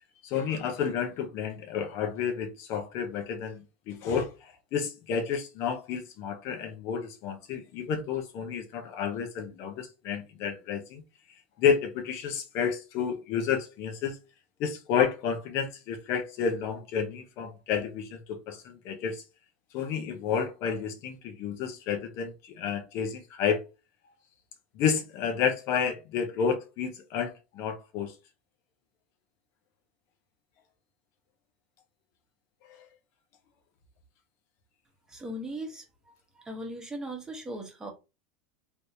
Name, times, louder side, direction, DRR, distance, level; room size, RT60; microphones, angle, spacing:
voice 1, 0.2-11.0 11.6-14.2 14.6-19.2 19.7-23.6 24.8-28.1 32.7-32.9, left 7 dB, 50° left, 0.6 m, -30 dB
voice 2, 35.1-35.8 36.3-37.9, right 1 dB, 10° right, 1.0 m, -38 dB
3.4 x 2.9 x 2.6 m
supercardioid pair, 135°, 6 cm